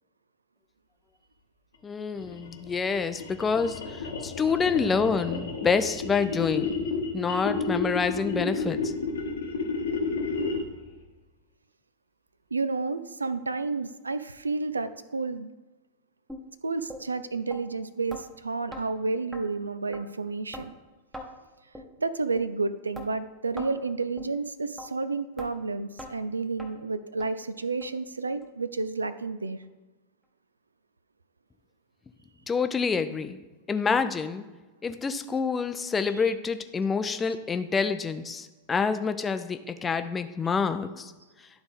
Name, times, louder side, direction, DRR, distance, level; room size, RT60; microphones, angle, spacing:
voice 1, 1.8-6.8 7.1-8.9 32.5-33.4 33.7-34.4 34.8-41.1, left 5 dB, 15° left, 9 dB, 0.5 m, -27 dB
sound 1, 2.1-10.8, left 4 dB, 65° left, 1.0 m, -31 dB
voice 2, 12.5-15.5 16.6-20.7 22.0-29.6 36.1-36.3, right 3 dB, 75° right, 13 dB, 0.3 m, -31 dB
sound 2, 16.3-16.4 16.9-17.0 17.5-17.6 18.1-18.2 18.7-18.8 19.3-19.4 19.9-20.0 20.5-20.7 21.1-21.3 21.7-21.9 22.4-22.5 22.9-23.1 23.6-23.7 24.2-24.3 24.8-24.9 25.4-25.5 26.0-26.1 26.6-26.7 27.2-27.3 27.8-27.9 28.4-28.5 29.0-29.1, equal, 5° right, 1.0 m, -40 dB
11.5 x 4.0 x 3.4 m, 1.2 s
figure-of-eight pair, 90°, 0 cm